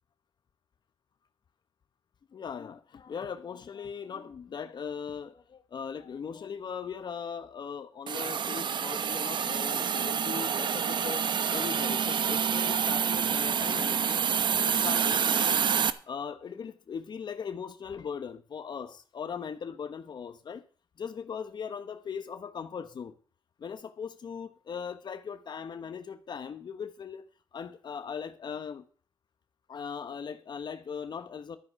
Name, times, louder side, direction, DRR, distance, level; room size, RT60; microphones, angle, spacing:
voice 1, 2.3-14.3 14.6-15.6 16.1-20.6 21.0-23.1 23.6-27.3 27.5-28.9 29.7-31.6, left 6 dB, 65° left, 1.2 m, -39 dB
Hiss, 8.1-15.9, right 7 dB, 70° right, 0.9 m, -27 dB
13.0 x 9.8 x 4.8 m
cardioid pair, 70°, 8 cm